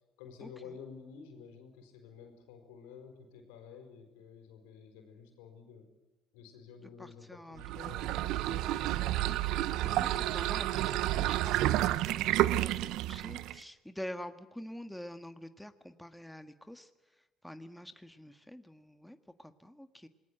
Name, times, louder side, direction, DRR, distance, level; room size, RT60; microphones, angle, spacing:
voice 1, 0.2-5.9 6.3-9.0, left 6 dB, 85° left, 5 dB, 4.8 m, -51 dB
voice 2, 7.0-8.0 9.2-16.9 17.4-20.1, left 1 dB, 5° left, 9 dB, 1.6 m, -47 dB
sound 1, 7.6-13.6, right 15 dB, 75° right, 0.8 m, -30 dB
27.5 x 20.0 x 8.0 m, 1.1 s
hypercardioid pair, 65°, 0 cm